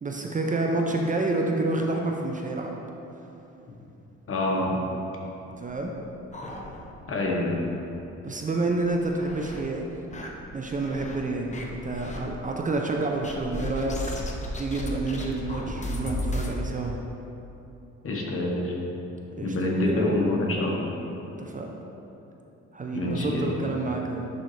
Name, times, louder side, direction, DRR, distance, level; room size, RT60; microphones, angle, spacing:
voice 1, 0.0-2.8 5.6-6.0 8.2-10.0 10.5-14.0 14.6-16.9 19.4-19.6 19.9-20.1 21.4-21.7 22.7-24.3, right 2 dB, 25° right, 1 dB, 0.5 m, -28 dB
voice 2, 4.3-4.8 7.1-7.6 18.0-18.7 19.4-20.8 22.9-23.6, left 1 dB, 45° left, -2 dB, 1.3 m, -26 dB
sound 1, 5.6-7.2 7.5-7.6 8.0-8.1 8.7-9.6 10.1-11.2 11.5-12.2 13.2-16.5, left 1 dB, 25° left, 0.8 m, -35 dB
10.5 x 3.9 x 3.3 m, 3.0 s
cardioid pair, 90°, 30 cm